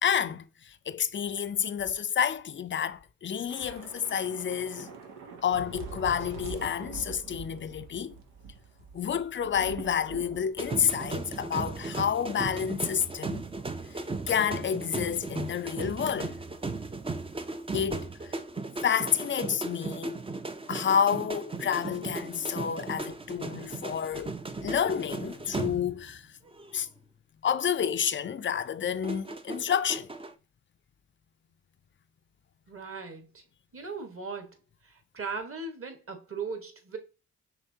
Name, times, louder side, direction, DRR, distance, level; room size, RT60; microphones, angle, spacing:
voice 1, 0.0-4.9 5.4-8.2 8.9-13.5 14.3-16.4 17.7-18.3 18.8-20.2 20.7-24.4 24.6-26.3 26.7-26.9 27.4-30.1, left 8 dB, 30° left, 0.5 m, -29 dB
Thunder / Rain, 3.5-12.1 12.3-12.5 12.9-13.1, right 4 dB, 80° right, 0.9 m, -44 dB
sound 1, 10.6-26.2 26.5-26.8 29.0-30.3, right 3 dB, 15° right, 0.6 m, -36 dB
voice 2, 32.7-33.4 33.7-34.5 34.8-37.0, right 4 dB, 35° right, 1.5 m, -38 dB
5.8 x 3.2 x 2.8 m
hypercardioid pair, 50°, 37 cm